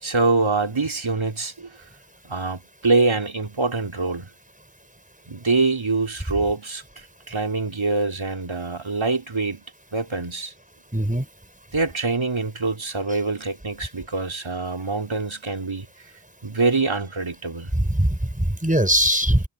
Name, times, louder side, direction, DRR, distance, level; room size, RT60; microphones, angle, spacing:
voice 1, 0.0-1.7 2.3-4.3 5.3-6.8 7.3-9.6 9.9-10.5 11.7-15.9 16.4-17.7, right 3 dB, 70° right, 4.1 m, -24 dB
voice 2, 10.9-11.2 17.7-19.4, right 1 dB, 15° right, 5.0 m, -21 dB
wide cardioid pair, 45°, 49 cm